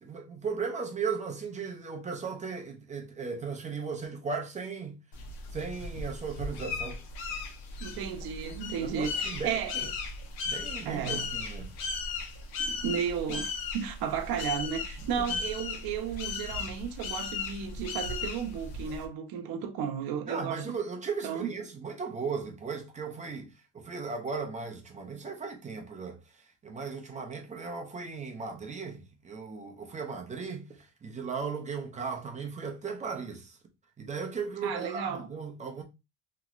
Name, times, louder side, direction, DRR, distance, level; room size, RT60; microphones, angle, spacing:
voice 1, 0.0-5.0 5.5-7.0 8.8-9.9 10.4-11.7 15.1-15.4 20.2-33.6 34.0-35.8, right 5 dB, 15° right, 0.4 m, -37 dB
sound 1, 5.1-19.1, left 4 dB, 80° left, 0.9 m, -36 dB
voice 2, 7.8-9.9 10.8-11.4 12.6-20.6 21.2-21.5 34.6-35.3, right 7 dB, 55° right, 0.7 m, -34 dB
3.0 x 2.9 x 2.4 m
cardioid pair, 140°, 45 cm